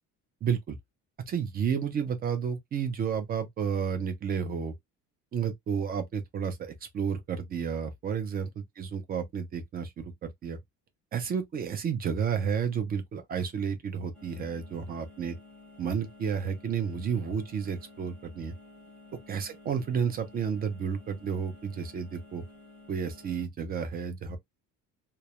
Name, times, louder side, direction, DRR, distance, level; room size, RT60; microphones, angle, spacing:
voice 1, 0.4-0.8 1.3-4.7 5.3-10.6 11.1-15.4 15.8-18.5 19.3-22.4 22.9-24.4, right 7 dB, 30° right, 0.4 m, -31 dB
sound 1, 14.1-23.4, left 2 dB, 5° left, 0.7 m, -53 dB
2.2 x 2.0 x 2.8 m
cardioid pair, 175°, 34 cm